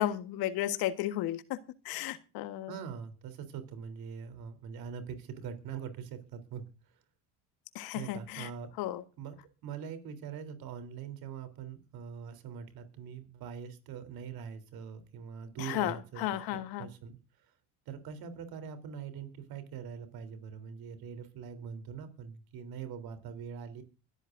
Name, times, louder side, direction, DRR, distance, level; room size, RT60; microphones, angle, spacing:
voice 1, 0.0-1.6 1.8-2.7 7.7-8.5 8.8-9.0 15.6-16.9, left 13 dB, 70° left, 12 dB, 1.5 m, -33 dB
voice 2, 2.7-6.6 7.9-8.7 9.2-9.3 9.6-16.2 16.5-17.2 17.9-23.8, right 7 dB, 65° right, 8 dB, 3.5 m, -43 dB
23.5 x 13.0 x 2.6 m, 0.32 s
hypercardioid pair, 70°, 38 cm